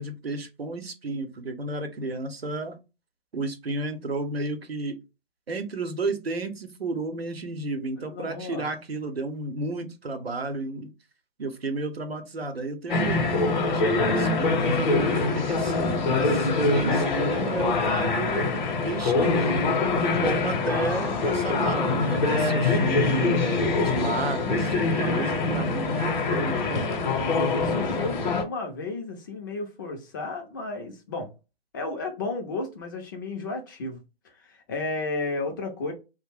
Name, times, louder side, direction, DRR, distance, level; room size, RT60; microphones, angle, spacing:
voice 1, 0.0-2.8 3.3-5.0 5.5-10.9 11.4-19.6 19.9-26.9, right 2 dB, 90° right, 0.7 m, -32 dB
voice 2, 8.1-8.7 16.4-16.9 27.6-31.3 31.7-34.0 34.3-35.9, left 3 dB, 20° left, 0.4 m, -33 dB
sound 1, 12.9-28.4, left 3 dB, 50° left, 0.7 m, -24 dB
2.4 x 2.1 x 3.3 m
figure-of-eight pair, 125°, 29 cm